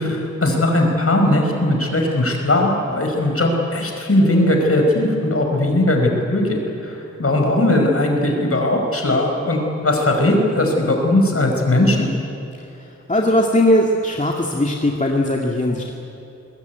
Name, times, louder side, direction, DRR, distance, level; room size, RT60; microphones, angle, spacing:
voice 1, 0.0-12.1, left 1 dB, 50° left, 2 dB, 5.2 m, -18 dB
voice 2, 12.6-15.9, left 1 dB, 25° left, 0 dB, 2.1 m, -19 dB
22.5 x 20.5 x 9.5 m, 2.8 s
wide cardioid pair, 65°, 29 cm